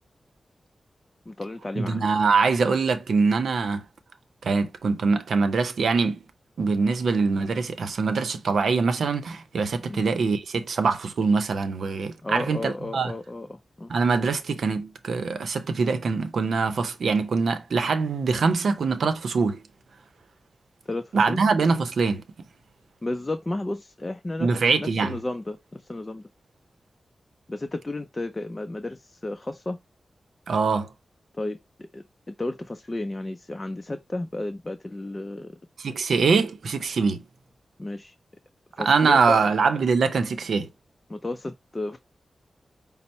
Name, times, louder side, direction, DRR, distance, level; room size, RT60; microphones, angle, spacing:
voice 1, 1.3-2.0 9.8-10.0 12.2-13.9 20.9-21.5 23.0-24.5 24.8-26.2 27.5-29.8 31.3-35.6 37.8-38.2 38.8-39.5 41.1-42.0, left 2 dB, 30° left, 0.5 m, -33 dB
voice 2, 1.8-3.8 4.4-6.2 6.6-13.1 13.9-19.6 21.1-22.2 24.4-25.2 30.5-30.9 35.8-37.2 38.8-40.7, right 4 dB, 85° right, 0.6 m, -23 dB
5.3 x 2.0 x 4.1 m
cardioid pair, 50°, 0 cm